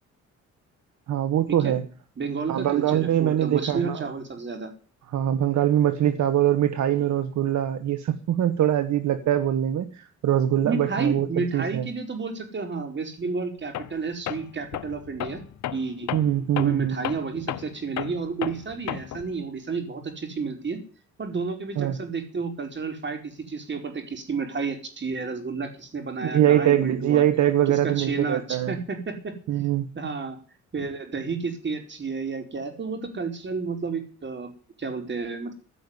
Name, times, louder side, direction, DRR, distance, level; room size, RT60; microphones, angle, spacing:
voice 1, 1.1-1.9 2.5-4.0 5.1-11.9 16.1-17.0 21.8-22.0 26.2-28.7 29.5-29.9, right 11 dB, 70° right, 10 dB, 1.5 m, -23 dB
voice 2, 2.2-4.7 10.6-15.4 15.7-16.1 16.6-20.8 21.2-27.2 27.7-29.3 29.9-30.4 30.7-34.5 34.8-35.5, right 4 dB, 40° right, 5 dB, 4.7 m, -31 dB
Tools, 13.7-14.0 14.3-19.3, left 12 dB, 70° left, 1.0 m, -33 dB
15.5 x 6.3 x 9.8 m, 0.41 s
cardioid pair, 90°, 30 cm